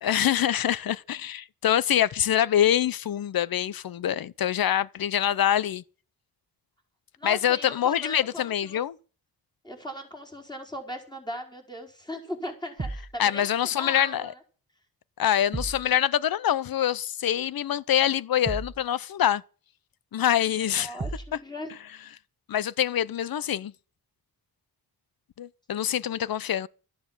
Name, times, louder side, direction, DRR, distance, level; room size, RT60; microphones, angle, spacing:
voice 1, 0.0-5.8 7.2-9.0 13.2-14.3 15.2-19.4 20.1-20.9 22.5-23.7 25.4-26.7, left 10 dB, 60° left, 0.7 m, -25 dB
voice 2, 7.2-8.8 9.6-13.5 13.8-14.4 20.4-21.7, equal, 10° left, 4.7 m, -38 dB
sound 1, 12.8-13.2 15.5-15.9 18.4-18.8 21.0-21.4, right 3 dB, 25° right, 1.4 m, -33 dB
13.0 x 10.5 x 7.3 m
cardioid pair, 80°, 40 cm